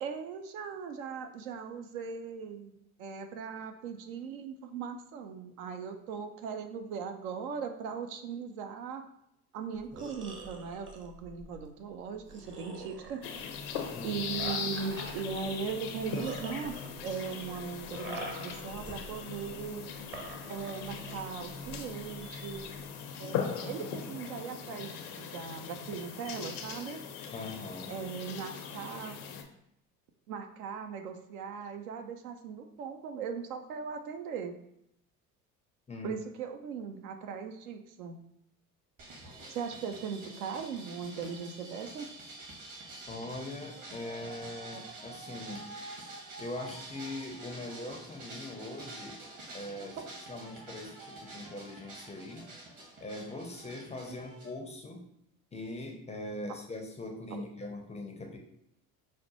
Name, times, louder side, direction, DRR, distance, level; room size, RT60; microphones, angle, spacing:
voice 1, 0.0-2.7 3.0-9.0 9.5-13.5 14.0-16.7 17.0-19.9 20.5-22.7 23.2-27.0 27.9-29.2 30.3-34.6 36.0-38.2 39.5-42.1 50.0-50.1 57.3-57.4, right 6 dB, 65° right, 6 dB, 0.6 m, -39 dB
sound 1, 9.8-22.9, right 2 dB, 25° right, 0.8 m, -46 dB
sound 2, 13.2-29.4, left 7 dB, 70° left, 0.6 m, -40 dB
voice 2, 13.9-14.2 27.3-27.9 35.9-36.2 43.1-45.7 46.4-49.2 49.5-50.0 50.3-52.5 53.0-55.0 55.5-58.4, left 2 dB, 15° left, 2 dB, 0.5 m, -41 dB
sound 3, 39.0-54.5, right 2 dB, 45° right, 1.2 m, -47 dB
4.8 x 2.1 x 2.8 m, 0.79 s
figure-of-eight pair, 60°, 45 cm